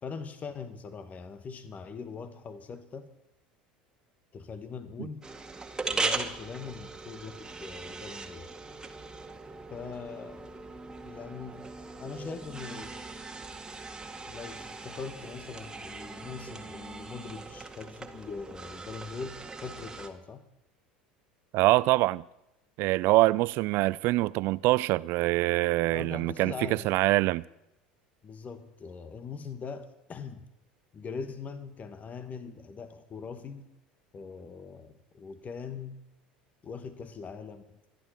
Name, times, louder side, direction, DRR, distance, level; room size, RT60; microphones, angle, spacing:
voice 1, 0.0-3.1 4.3-5.2 5.9-8.5 9.7-10.6 11.0-11.7 12.0-13.0 14.3-20.5 25.9-27.0 28.2-30.5 30.9-33.7 34.1-36.0 36.6-37.8, left 5 dB, 35° left, 1.8 m, -41 dB
sound 1, 5.2-20.1, right 3 dB, 15° right, 2.0 m, -39 dB
voice 2, 21.5-22.2 22.8-26.5 26.8-27.4, right 20 dB, 55° right, 0.5 m, -24 dB
27.5 x 11.5 x 4.5 m
hypercardioid pair, 75°, 5 cm